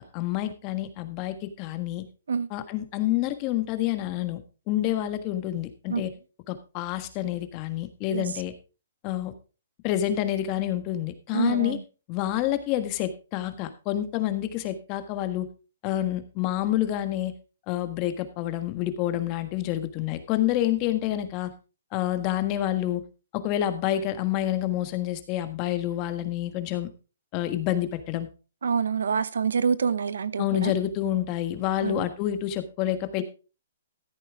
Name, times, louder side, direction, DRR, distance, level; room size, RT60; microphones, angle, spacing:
voice 1, 0.1-2.0 2.5-4.4 4.7-6.1 6.5-8.5 9.0-9.3 9.8-11.8 12.1-15.5 15.8-17.3 17.7-21.5 21.9-23.0 23.3-26.9 27.3-28.3 30.4-33.2, left 12 dB, 30° left, 1.5 m, -28 dB
voice 2, 11.3-11.8 28.6-30.7 31.8-32.0, right 6 dB, 80° right, 0.8 m, -26 dB
14.0 x 8.4 x 3.6 m
hypercardioid pair, 150°, 0 cm